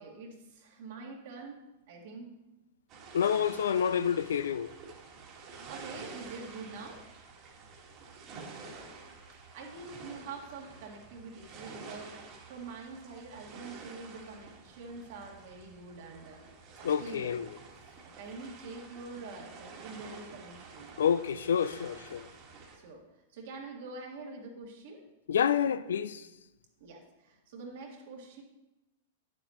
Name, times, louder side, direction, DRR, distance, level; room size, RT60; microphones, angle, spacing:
voice 1, 0.0-1.6 1.9-2.3 5.7-7.0 9.5-16.4 16.8-17.4 18.0-20.9 21.8-21.9 22.8-23.0 23.3-25.0 26.8-28.4, right 3 dB, 65° right, 1.9 m, -45 dB
sound 1, 2.9-22.8, right 4 dB, 40° right, 1.6 m, -49 dB
voice 2, 3.1-4.7 16.8-17.5 21.0-22.3 25.3-26.3, left 8 dB, 85° left, 0.4 m, -28 dB
9.2 x 7.3 x 3.0 m
hypercardioid pair, 130°, 0 cm